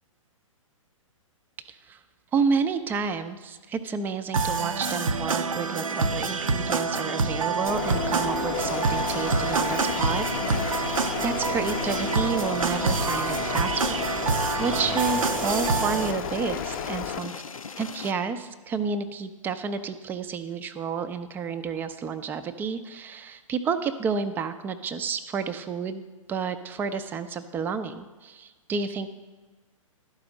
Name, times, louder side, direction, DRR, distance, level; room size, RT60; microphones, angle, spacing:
voice 1, 1.7-2.0 2.3-10.7 11.2-14.0 14.6-17.3 17.8-26.0 26.3-29.1, right 5 dB, 10° right, 10 dB, 0.4 m, -30 dB
sound 1, 4.3-16.1, right 4 dB, 80° right, 0.5 m, -27 dB
Bird, 7.7-17.2, left 8 dB, 35° left, 0.6 m, -33 dB
sound 2, 8.5-18.1, left 5 dB, 85° left, 0.5 m, -39 dB
12.0 x 5.0 x 6.3 m, 1.3 s
figure-of-eight pair, 120°, 17 cm